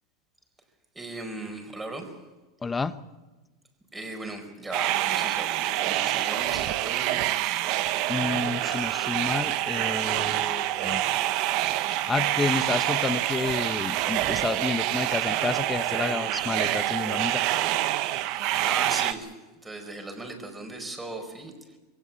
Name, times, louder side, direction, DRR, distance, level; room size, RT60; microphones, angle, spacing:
voice 1, 0.9-2.2 3.9-7.2 18.1-21.8, right 2 dB, 10° right, 5 dB, 4.7 m, -38 dB
voice 2, 2.6-3.0 7.9-11.0 11.4-11.6 12.1-17.4, left 4 dB, 15° left, 13 dB, 1.0 m, -30 dB
sound 1, 4.7-19.1, right 14 dB, 55° right, 1.1 m, -26 dB
22.5 x 16.5 x 8.4 m, 1.2 s
supercardioid pair, 125°, 0 cm